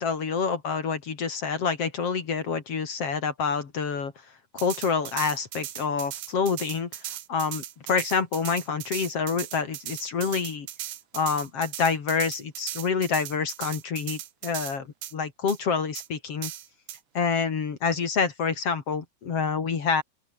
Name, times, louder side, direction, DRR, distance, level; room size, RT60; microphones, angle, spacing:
voice 1, 0.0-4.1 4.5-10.7 11.1-14.9 15.1-16.5 17.1-20.0, left 5 dB, 50° left, 3.3 m, -27 dB
sound 1, 4.6-14.8 15.0-15.1 15.5-15.6 16.0-16.1 16.4-17.0, right 13 dB, 75° right, 2.7 m, -38 dB
open air
omnidirectional pair, 3.6 m